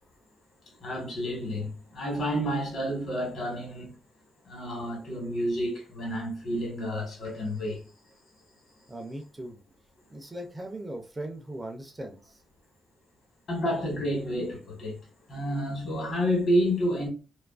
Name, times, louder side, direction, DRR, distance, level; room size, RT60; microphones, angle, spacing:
voice 1, 0.8-4.0 4.4-7.8 13.5-15.0 15.3-17.1, equal, 50° left, 1.1 m, -29 dB
voice 2, 8.9-9.6 10.1-12.4, right 1 dB, 15° right, 0.3 m, -39 dB
2.6 x 2.3 x 2.3 m
wide cardioid pair, 165°, 0 cm